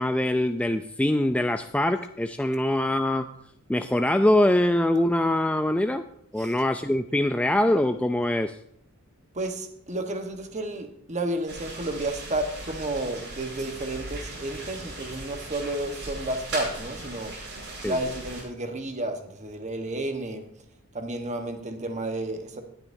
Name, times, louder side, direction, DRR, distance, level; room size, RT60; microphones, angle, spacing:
voice 1, 0.0-3.3 3.7-6.0 6.3-8.6 17.8-18.0, left 1 dB, 5° left, 7 dB, 0.3 m, -23 dB
voice 2, 9.3-17.3 17.8-20.5 20.9-22.6, right 1 dB, 30° right, 6 dB, 1.2 m, -31 dB
sound 1, 11.5-18.4, right 2 dB, 55° right, 5.0 m, -38 dB
19.0 x 8.9 x 2.7 m, 0.74 s
head